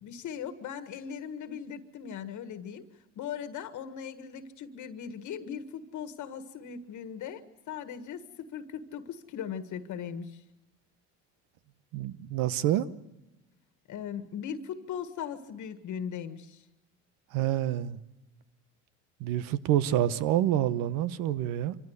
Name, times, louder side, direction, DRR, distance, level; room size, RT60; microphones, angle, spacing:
voice 1, 0.0-2.9 3.2-10.4 13.9-16.6, left 8 dB, 60° left, 1.7 m, -39 dB
voice 2, 11.9-12.9 17.3-18.0 19.2-21.8, right 12 dB, 75° right, 1.0 m, -27 dB
26.0 x 15.5 x 8.1 m
supercardioid pair, 85°, 34 cm